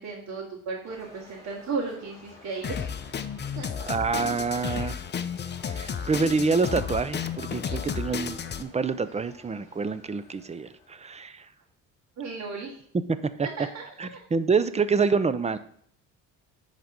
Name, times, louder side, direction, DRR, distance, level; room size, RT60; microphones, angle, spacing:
voice 1, 0.0-2.9 3.6-3.9 12.2-12.8 13.4-14.2, right 4 dB, 55° right, -5 dB, 2.4 m, -35 dB
sound 1, 0.8-11.1, left 2 dB, 10° left, 3.9 m, -52 dB
Drum kit, 2.6-8.6, left 7 dB, 35° left, 0.7 m, -32 dB
voice 2, 3.9-5.0 5.7-11.5 13.4-13.5 14.0-15.6, right 4 dB, 20° right, 13 dB, 0.6 m, -27 dB
10.5 x 4.2 x 5.0 m, 0.63 s
cardioid pair, 100°, 32 cm